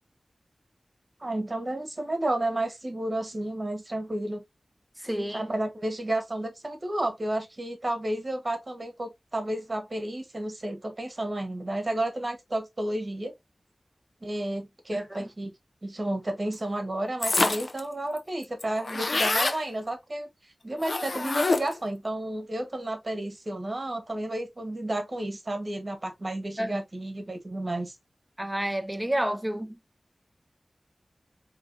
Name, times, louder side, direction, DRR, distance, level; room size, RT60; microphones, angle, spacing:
voice 1, 1.2-4.4 5.3-13.3 14.2-15.5 15.8-20.3 20.6-27.9, right 1 dB, 40° right, 1.4 m, -31 dB
voice 2, 5.0-5.5 15.1-15.3 26.6-26.8 28.4-29.8, right 1 dB, 10° right, 0.5 m, -30 dB
sound 1, 17.2-17.8 18.2-18.3 18.4-19.6 20.8-21.8, left 3 dB, 60° left, 0.5 m, -26 dB
4.8 x 3.0 x 2.7 m
wide cardioid pair, 70°, 0 cm